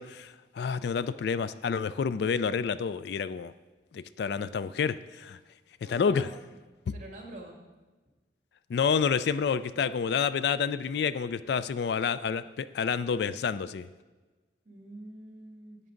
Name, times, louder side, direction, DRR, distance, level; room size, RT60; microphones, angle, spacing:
voice 1, 0.0-3.5 3.9-5.4 5.8-6.3 6.9-7.0 8.7-13.9, left 6 dB, 60° left, 15 dB, 0.3 m, -29 dB
voice 2, 5.8-6.3 6.9-7.6 14.7-15.8, right 1 dB, 40° right, 0 dB, 1.9 m, -45 dB
11.0 x 8.1 x 3.8 m, 1.2 s
head